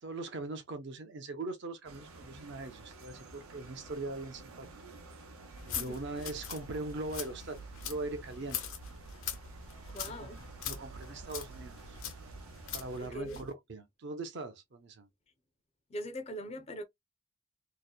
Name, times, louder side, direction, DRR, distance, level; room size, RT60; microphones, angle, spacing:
voice 1, 0.0-4.7 5.6-8.6 10.2-10.3 10.7-12.0 12.7-15.1, right 2 dB, 55° right, 0.5 m, -41 dB
sound 1, 1.8-13.0, right 2 dB, 85° right, 0.7 m, -52 dB
sound 2, 5.5-13.5, left 6 dB, 70° left, 0.7 m, -43 dB
voice 2, 9.9-10.4 13.0-13.4 15.9-16.8, equal, 30° left, 0.4 m, -41 dB
2.8 x 2.1 x 2.2 m
head